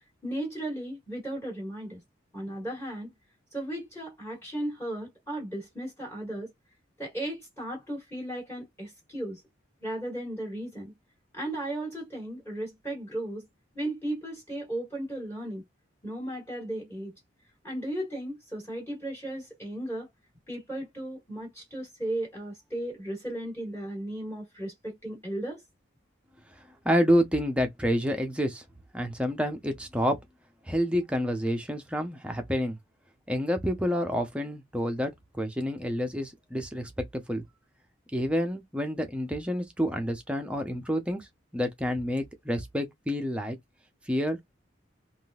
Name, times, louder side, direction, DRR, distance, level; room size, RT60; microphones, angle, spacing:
voice 1, 0.2-2.0 2.3-3.1 3.5-6.5 7.0-9.4 9.8-10.9 11.3-13.5 13.7-15.6 16.0-17.1 17.6-20.1 20.5-25.6, right 1 dB, 15° left, 1.8 m, -35 dB
voice 2, 26.8-28.6 28.9-30.2 30.7-32.8 33.3-37.4 38.1-41.3 41.5-43.6 44.1-44.4, equal, 5° right, 0.7 m, -28 dB
3.7 x 2.5 x 2.4 m
head